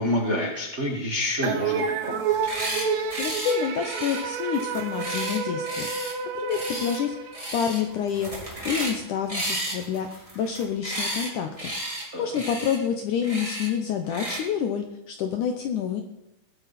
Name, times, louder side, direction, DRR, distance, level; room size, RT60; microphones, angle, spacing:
voice 1, 0.0-2.2 12.1-12.3, left 1 dB, 90° right, -1 dB, 0.6 m, -27 dB
sound 1, 1.4-8.0, right 6 dB, 70° right, 1.8 m, -30 dB
sound 2, 2.3-2.9 3.1-3.5 3.8-6.1 6.5-7.0 7.3-7.8 8.1-9.0 9.3-11.3 11.6-12.0 12.3-12.8 13.2-13.7 14.1-14.4, right 1 dB, 10° right, 2.3 m, -33 dB
voice 2, 3.2-5.9 6.4-11.7 12.2-16.0, left 8 dB, 75° left, 5 dB, 1.8 m, -28 dB
20.5 x 8.5 x 4.2 m, 0.93 s
omnidirectional pair, 4.7 m